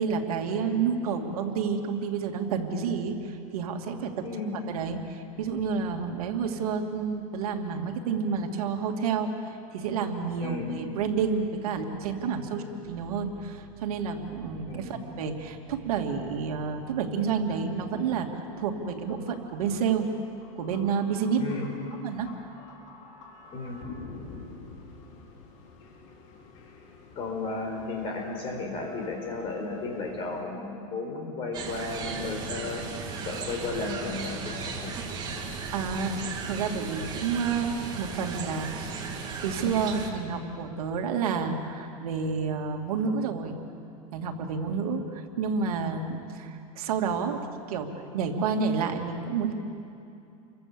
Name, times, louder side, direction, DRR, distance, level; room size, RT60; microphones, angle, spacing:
voice 1, 0.0-4.3 4.5-20.1 20.6-21.6 22.0-22.5 35.7-39.0 39.4-43.6 44.1-47.4 47.7-47.9 48.1-49.5, right 5 dB, 75° right, 3 dB, 2.7 m, -30 dB
voice 2, 4.2-4.6 10.4-10.7 12.5-12.7 14.7-14.9 21.4-21.7 23.5-23.8 27.1-32.8 33.2-34.9, left 3 dB, 30° left, 2 dB, 4.8 m, -34 dB
sound 1, 18.8-30.4, left 4 dB, 55° left, 4.8 m, -48 dB
sound 2, 31.5-40.1, right 4 dB, 20° right, 2.4 m, -36 dB
30.0 x 24.0 x 7.1 m, 2.7 s
supercardioid pair, 165°, 19 cm